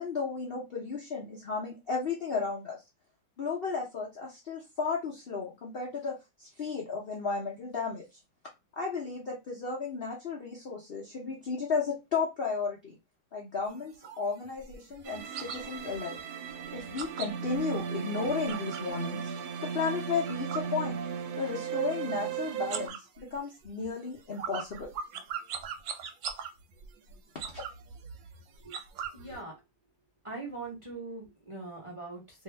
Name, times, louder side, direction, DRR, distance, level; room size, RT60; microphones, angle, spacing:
voice 1, 0.0-2.8 3.4-8.0 8.8-13.0 13.3-16.2 16.7-19.3 19.6-21.0 21.4-24.9 27.5-27.6, left 5 dB, 75° left, -2 dB, 0.5 m, -34 dB
sound 1, 13.7-19.0 19.3-21.5 21.7-22.3 22.6-29.4, right 7 dB, 85° right, 1.3 m, -42 dB
sound 2, 15.0-22.9, right 7 dB, 70° right, 1.1 m, -36 dB
voice 2, 29.1-29.6 30.2-32.4, right 3 dB, 25° right, -2 dB, 0.7 m, -41 dB
2.7 x 2.7 x 3.2 m, 0.23 s
omnidirectional pair, 2.0 m